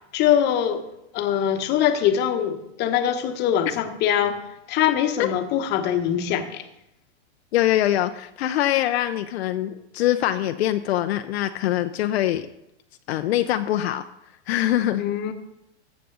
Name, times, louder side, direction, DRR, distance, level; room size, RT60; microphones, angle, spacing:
voice 1, 0.1-0.8 1.1-4.4 4.7-6.6 15.0-15.3, left 9 dB, 30° left, 8 dB, 1.0 m, -23 dB
voice 2, 7.5-12.5 13.1-14.0 14.5-15.1, left 13 dB, 65° left, 8 dB, 0.6 m, -23 dB
14.0 x 7.5 x 3.9 m, 0.84 s
hypercardioid pair, 135°, 34 cm